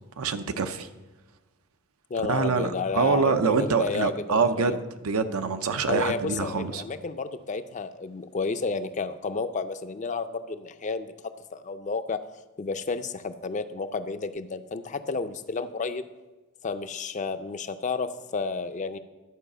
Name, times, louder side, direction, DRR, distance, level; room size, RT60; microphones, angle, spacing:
voice 1, 0.2-0.9 2.3-4.8 5.0-6.8, right 5 dB, 80° right, 9 dB, 0.7 m, -25 dB
voice 2, 2.1-4.8 5.9-11.1 11.5-12.2 12.6-16.0 16.6-19.0, left 4 dB, 35° left, 10 dB, 0.5 m, -31 dB
11.0 x 4.9 x 6.7 m, 1.2 s
head